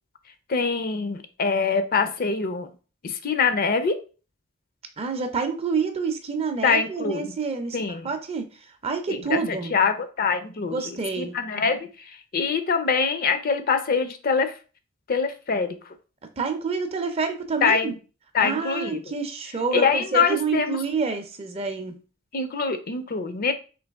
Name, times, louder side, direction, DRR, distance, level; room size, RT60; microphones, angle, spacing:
voice 1, 0.5-2.7 3.0-4.0 6.6-7.4 7.7-8.1 9.1-14.6 15.1-15.9 17.6-17.9 18.3-19.0 19.7-20.8 22.3-23.5, left 5 dB, 45° left, 10 dB, 0.5 m, -24 dB
voice 2, 5.0-7.8 8.0-8.5 8.8-9.7 10.6-11.6 16.4-18.0 18.4-21.9, right 4 dB, 30° right, 7 dB, 0.5 m, -28 dB
3.9 x 2.8 x 3.4 m, 0.36 s
head